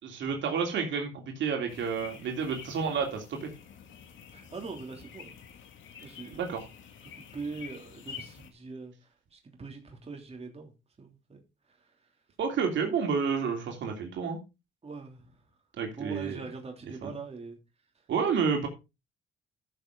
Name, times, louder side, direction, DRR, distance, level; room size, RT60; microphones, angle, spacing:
voice 1, 0.0-3.5 6.3-6.6 12.4-14.4 15.8-16.4 17.0-17.1 18.1-18.7, right 6 dB, 70° right, 3.2 m, -30 dB
sound 1, 1.7-8.5, left 7 dB, 75° left, 2.4 m, -48 dB
voice 2, 4.3-5.4 6.0-6.4 7.0-10.7 11.0-11.4 11.7-12.1 14.8-15.3 16.0-17.6, right 4 dB, 30° right, 3.2 m, -42 dB
13.5 x 6.8 x 4.0 m
cardioid pair, 90°, 20 cm